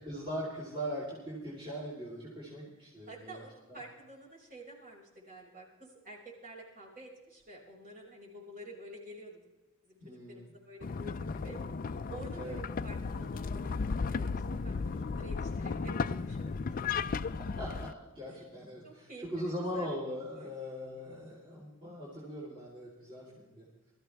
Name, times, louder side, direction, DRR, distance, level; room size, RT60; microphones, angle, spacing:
voice 1, 0.0-3.4 3.7-3.8 10.0-10.5 12.3-12.6 16.8-17.1 17.4-23.7, equal, 25° right, -6 dB, 3.8 m, -40 dB
voice 2, 3.1-9.4 9.8-10.0 10.3-11.6 12.1-16.9 18.3-18.4 18.8-20.0 20.4-20.5 23.2-23.6, right 1 dB, 40° right, -4 dB, 5.8 m, -50 dB
sound 1, 10.8-17.9, left 4 dB, 40° left, 0.4 m, -35 dB
22.5 x 14.0 x 3.5 m, 1.1 s
head